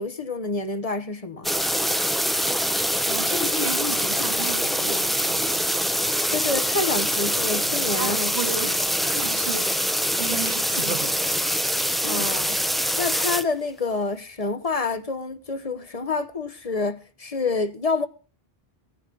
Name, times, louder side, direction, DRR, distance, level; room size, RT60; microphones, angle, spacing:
voice 1, 0.0-1.5 6.3-8.3 12.1-12.6 13.0-18.1, left 3 dB, 35° left, 1.0 m, -28 dB
sound 1, 1.4-13.4, equal, ahead, 0.4 m, -24 dB
voice 2, 3.1-5.5 8.0-9.9 10.2-11.2, right 2 dB, 75° right, 2.7 m, -33 dB
sound 2, 5.6-11.4, left 6 dB, 60° left, 4.0 m, -47 dB
sound 3, 7.6-8.3 9.2-9.6 10.3-10.4 10.7-11.1 12.0-12.3, right 4 dB, 55° right, 1.2 m, -37 dB
17.0 x 11.0 x 3.8 m
omnidirectional pair, 1.1 m